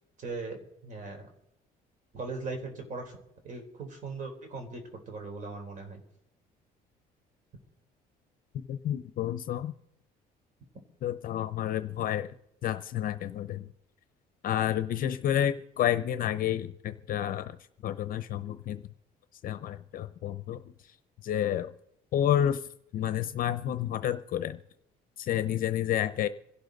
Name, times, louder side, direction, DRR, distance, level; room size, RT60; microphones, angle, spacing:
voice 1, 0.2-1.3 2.1-3.2 3.4-6.0, right 3 dB, 50° right, 4 dB, 3.8 m, -39 dB
voice 2, 8.7-9.7 11.0-12.3 12.6-13.7 14.4-17.6 17.8-18.8 19.4-21.0 21.2-21.7 22.1-22.7 22.9-24.6 25.2-26.3, left 11 dB, 55° left, 11 dB, 0.7 m, -30 dB
26.0 x 11.5 x 4.0 m, 0.80 s
cardioid pair, 110°, 17 cm